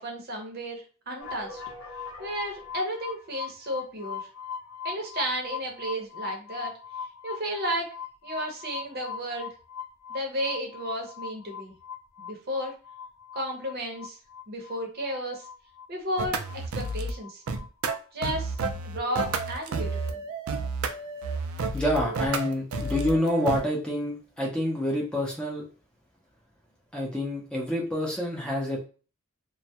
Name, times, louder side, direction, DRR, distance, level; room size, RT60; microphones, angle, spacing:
voice 1, 0.0-1.6 2.2-4.3 4.8-6.7 7.2-7.9 8.2-9.5 10.1-11.7 12.2-12.7 13.3-14.2 14.5-15.4 15.9-17.4 18.1-18.6 18.8-20.2, equal, 50° right, 1 dB, 0.7 m, -33 dB
sound 1, 1.2-18.0 18.2-18.7, left 7 dB, 90° left, 0.7 m, -40 dB
sound 2, 16.2-17.1 17.5-23.6, right 3 dB, 80° right, 0.4 m, -31 dB
voice 2, 21.7-25.7 26.9-28.8, left 1 dB, 5° left, -3 dB, 0.5 m, -27 dB
2.2 x 2.1 x 2.7 m, 0.36 s
head